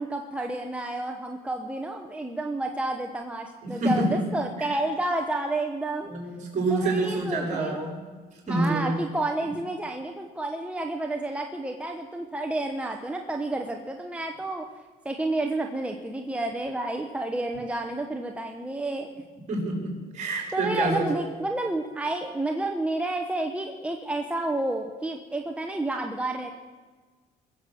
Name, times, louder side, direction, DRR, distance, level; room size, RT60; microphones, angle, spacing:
voice 1, 0.0-6.1 6.7-7.9 8.5-14.7 15.0-19.1 20.5-26.5, right 2 dB, 5° right, 2 dB, 1.0 m, -30 dB
voice 2, 3.6-4.3 6.1-8.1 8.5-9.0 9.4-9.5 19.5-21.1, right 2 dB, 45° right, 0 dB, 5.6 m, -27 dB
21.5 x 7.8 x 7.0 m, 1.4 s
cardioid pair, 110°, 17 cm